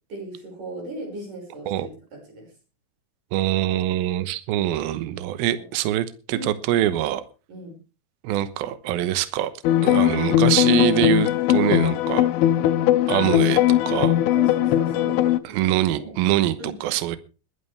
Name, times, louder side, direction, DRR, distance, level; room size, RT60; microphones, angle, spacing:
voice 1, 0.1-2.5 5.5-5.7 6.3-6.5 7.5-7.8 14.3-15.2 15.5-16.2 16.6-16.8, right 2 dB, 45° right, 6.9 m, -37 dB
voice 2, 3.3-7.2 8.2-9.5 9.8-12.3 13.1-14.2 15.5-17.2, right 13 dB, 75° right, 2.4 m, -24 dB
sound 1, 9.6-15.4, left 13 dB, 90° left, 2.1 m, -19 dB
21.0 x 11.0 x 3.4 m
omnidirectional pair, 5.5 m